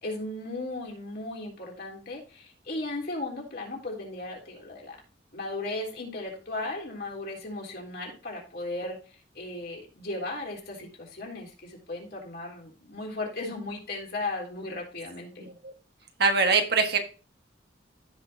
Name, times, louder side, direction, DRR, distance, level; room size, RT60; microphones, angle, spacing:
voice 1, 0.0-5.0 5.3-15.5, left 2 dB, 55° left, -1 dB, 3.5 m, -36 dB
voice 2, 15.4-15.7 16.2-17.0, right 4 dB, 55° right, 5 dB, 1.4 m, -23 dB
15.5 x 5.3 x 2.7 m, 0.36 s
head